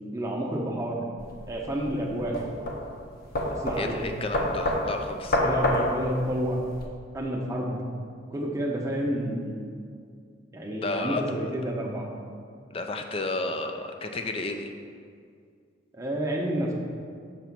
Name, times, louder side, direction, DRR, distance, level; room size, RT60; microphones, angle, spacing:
voice 1, 0.1-1.1 1.5-2.3 3.5-4.0 5.3-6.6 7.1-7.8 8.3-9.6 10.5-12.1 15.9-16.7, equal, 15° right, -2 dB, 0.8 m, -29 dB
sound 1, 1.2-6.9, left 1 dB, 55° left, 0.8 m, -28 dB
voice 2, 3.8-5.4 10.8-11.2 12.7-14.7, left 2 dB, 30° left, 5 dB, 0.4 m, -32 dB
6.7 x 3.0 x 5.9 m, 2.2 s
head